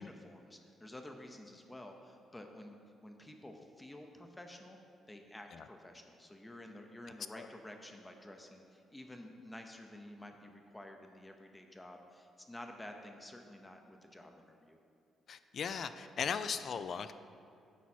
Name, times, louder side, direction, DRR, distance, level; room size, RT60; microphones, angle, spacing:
voice 1, 0.0-2.8 3.0-4.8 5.1-14.8, left 1 dB, 15° left, 4 dB, 0.6 m, -51 dB
voice 2, 15.3-17.1, left 6 dB, 55° left, 11 dB, 0.3 m, -37 dB
8.3 x 4.5 x 4.4 m, 2.6 s
cardioid pair, 90°, 0 cm